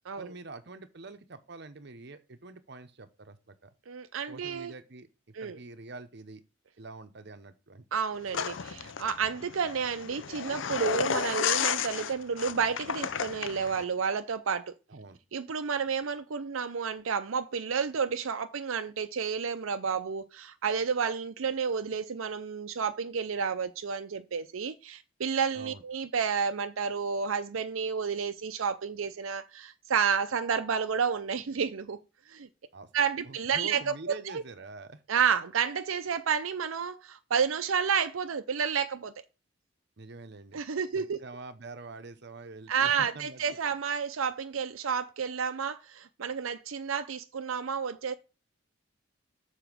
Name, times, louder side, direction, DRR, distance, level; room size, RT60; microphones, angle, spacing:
voice 1, 0.2-3.7 4.3-5.1 5.4-6.4 6.8-7.8 14.9-15.2 25.5-25.8 32.7-32.9 33.2-35.0 40.0-40.6 40.9-43.4, right 3 dB, 55° right, 0.9 m, -45 dB
voice 2, 3.9-4.7 5.4-5.6 7.9-14.7 15.3-32.0 32.3-32.5 32.9-33.8 34.3-34.4 35.1-39.1 40.5-41.2 42.7-48.1, right 6 dB, 85° right, 0.6 m, -30 dB
sound 1, 8.3-13.8, left 7 dB, 70° left, 0.6 m, -32 dB
7.0 x 4.5 x 6.0 m
head